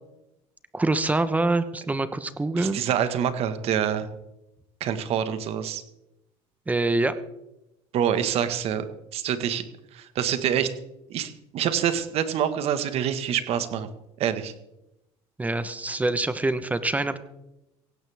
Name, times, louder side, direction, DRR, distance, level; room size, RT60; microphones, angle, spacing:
voice 1, 0.7-2.8 6.7-7.1 15.4-17.2, right 2 dB, 10° right, 12 dB, 1.1 m, -25 dB
voice 2, 2.6-4.1 4.8-5.8 7.9-8.8 9.1-9.6 9.9-10.7 11.1-13.9 14.2-14.5, right 9 dB, 55° right, 10 dB, 1.6 m, -26 dB
16.5 x 16.5 x 3.6 m, 0.89 s
cardioid pair, 110°, 12 cm